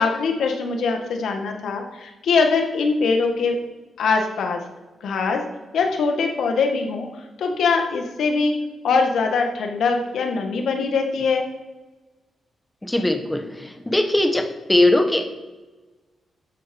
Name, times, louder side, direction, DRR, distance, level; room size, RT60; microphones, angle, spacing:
voice 1, 0.0-3.6 4.0-4.6 5.0-5.4 5.7-7.1 7.4-8.5 8.8-11.4, left 4 dB, 80° left, 4 dB, 1.9 m, -22 dB
voice 2, 12.8-15.3, left 1 dB, 10° left, 7 dB, 1.2 m, -20 dB
13.0 x 7.6 x 5.5 m, 1.2 s
wide cardioid pair, 150°, 0 cm